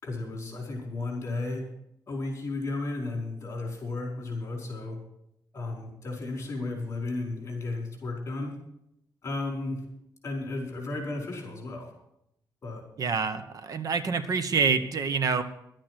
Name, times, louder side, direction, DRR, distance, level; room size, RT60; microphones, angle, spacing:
voice 1, 0.0-1.7 2.1-5.0 5.5-8.5 9.2-9.9 10.2-11.9 12.6-12.8, left 2 dB, 35° left, 0 dB, 4.9 m, -34 dB
voice 2, 13.0-15.4, right 5 dB, 55° right, 11 dB, 1.0 m, -27 dB
11.5 x 8.9 x 7.6 m, 0.79 s
wide cardioid pair, 150°, 7 cm